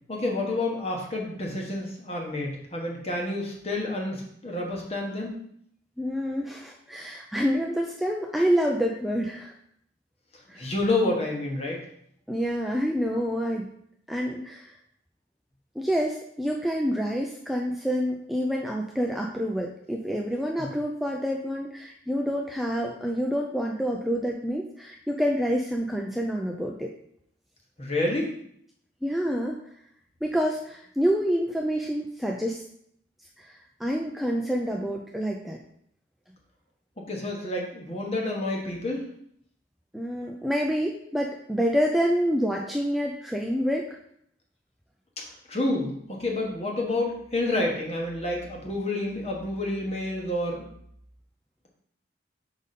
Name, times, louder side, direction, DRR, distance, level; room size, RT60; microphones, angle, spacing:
voice 1, 0.1-5.3 10.5-11.8 27.8-28.3 37.1-39.0 45.2-50.6, left 2 dB, 35° left, 0 dB, 1.2 m, -29 dB
voice 2, 6.0-9.5 10.5-10.7 12.3-13.7 14.1-14.7 15.8-26.9 29.0-29.6 30.2-32.6 33.4-35.6 39.9-44.0, equal, ahead, 0 dB, 0.4 m, -27 dB
5.2 x 5.0 x 4.1 m, 0.69 s
head